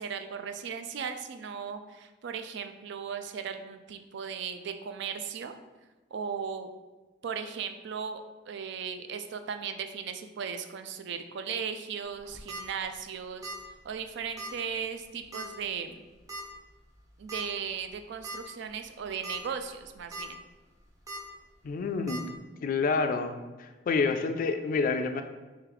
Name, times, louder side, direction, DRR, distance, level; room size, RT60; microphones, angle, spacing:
voice 1, 0.0-5.5 6.1-6.7 7.2-13.5 13.8-16.0 17.2-20.4, right 6 dB, 65° right, 8 dB, 0.3 m, -37 dB
sound 1, 12.2-12.6 13.4-13.7 13.9-14.0 14.4-14.5 15.3-15.6 16.3-16.4 17.3-17.4 17.9-18.0 18.2-18.4 19.0-19.4 19.8-20.2 21.1-21.2 22.1-22.2, right 1 dB, 20° right, 0.6 m, -39 dB
voice 2, 21.6-22.2 22.6-25.2, left 4 dB, 50° left, 7 dB, 0.3 m, -28 dB
3.2 x 3.0 x 3.8 m, 1.2 s
head